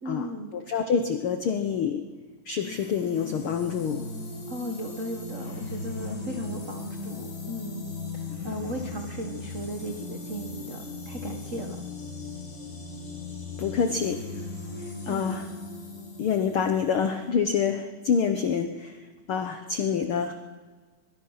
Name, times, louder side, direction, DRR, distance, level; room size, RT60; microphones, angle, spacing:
voice 1, 0.0-0.5 4.5-11.8 15.0-15.4, equal, 65° right, 3 dB, 0.7 m, -36 dB
voice 2, 0.5-2.0 2.5-4.1 13.6-14.2 15.0-15.4 16.2-19.0 19.3-20.3, left 6 dB, 90° left, 7 dB, 1.2 m, -26 dB
sound 1, 2.6-17.3, left 3 dB, 45° left, 5.1 m, -38 dB
22.5 x 22.5 x 5.7 m, 1.4 s
omnidirectional pair, 3.9 m